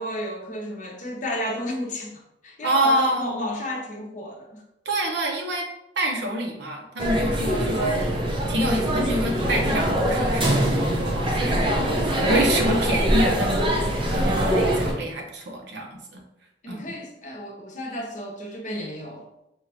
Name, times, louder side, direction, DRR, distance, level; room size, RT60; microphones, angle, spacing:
voice 1, 0.0-4.6 16.6-19.3, left 1 dB, 45° left, 0 dB, 0.8 m, -32 dB
voice 2, 2.6-3.5 4.8-5.7 6.0-8.2 8.5-16.2 16.7-16.9, right 1 dB, 65° right, 2 dB, 0.8 m, -27 dB
sound 1, 7.0-14.9, equal, 30° right, 0.7 m, -23 dB
5.1 x 2.4 x 3.3 m, 0.84 s
head